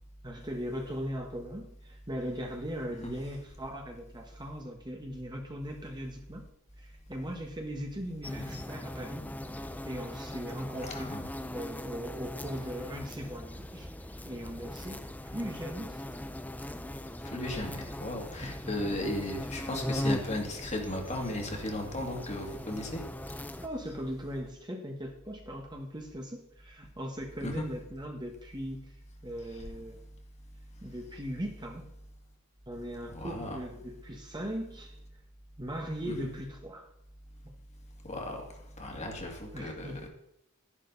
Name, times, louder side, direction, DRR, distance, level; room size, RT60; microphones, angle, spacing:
voice 1, 0.2-6.5 6.8-9.3 9.8-11.1 11.5-13.9 14.3-16.0 18.4-18.9 23.6-28.9 29.2-30.0 30.8-31.9 32.7-35.0 35.6-36.9 39.5-40.1, equal, 20° right, 1 dB, 1.5 m, -39 dB
sound 1, 8.2-23.7, left 1 dB, 5° left, 0.6 m, -39 dB
voice 2, 10.8-11.2 17.2-23.0 27.4-27.6 33.1-33.5 36.1-36.2 38.0-38.4 38.8-40.1, left 1 dB, 30° left, 1 dB, 2.3 m, -35 dB
12.0 x 11.0 x 4.1 m, 0.77 s
head